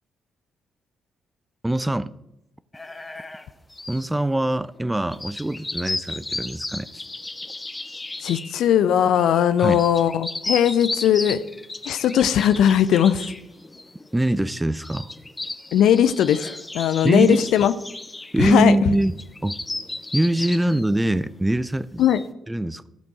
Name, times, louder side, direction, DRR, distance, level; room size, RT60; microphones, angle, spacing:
voice 1, 1.6-2.1 3.9-7.0 9.6-9.8 14.1-15.1 17.0-17.7 18.3-19.6 20.1-22.0 22.5-22.9, right 1 dB, 10° right, 0.4 m, -23 dB
sound 1, 2.7-4.1 4.5-4.8 5.1-8.7 9.2-21.5 22.0-22.3, left 2 dB, 20° left, 0.9 m, -34 dB
voice 2, 8.2-11.4 11.9-13.3 15.7-16.5 16.7-17.7 18.4-18.8 22.0-22.2, left 9 dB, 60° left, 0.4 m, -19 dB
15.5 x 5.2 x 4.7 m
figure-of-eight pair, 40°, 0 cm